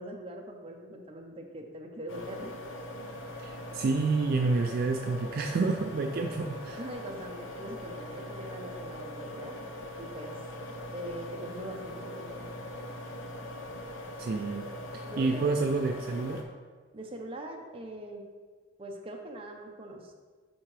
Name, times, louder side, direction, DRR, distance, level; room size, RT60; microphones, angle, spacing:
voice 1, 0.0-2.6 6.8-9.7 10.0-10.3 10.9-12.5 15.0-15.7 16.9-18.2 18.8-20.1, right 1 dB, 30° right, 2 dB, 0.7 m, -42 dB
sound 1, 2.1-16.4, left 1 dB, 85° left, 0.8 m, -41 dB
voice 2, 3.4-6.8 14.2-14.7 14.9-16.5, right 3 dB, 50° right, 4 dB, 0.3 m, -29 dB
10.5 x 3.6 x 3.3 m, 1.5 s
head